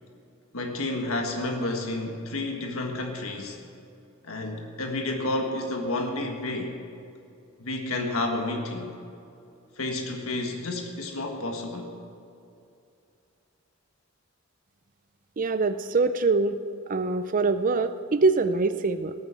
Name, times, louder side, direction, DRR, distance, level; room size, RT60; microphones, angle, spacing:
voice 1, 0.5-3.6 4.2-6.8 7.6-9.0 9.8-11.9, left 2 dB, 80° left, 3 dB, 1.6 m, -30 dB
voice 2, 15.4-16.6 16.9-19.1, right 3 dB, 40° right, 11 dB, 0.5 m, -24 dB
17.5 x 9.0 x 7.5 m, 2.6 s
head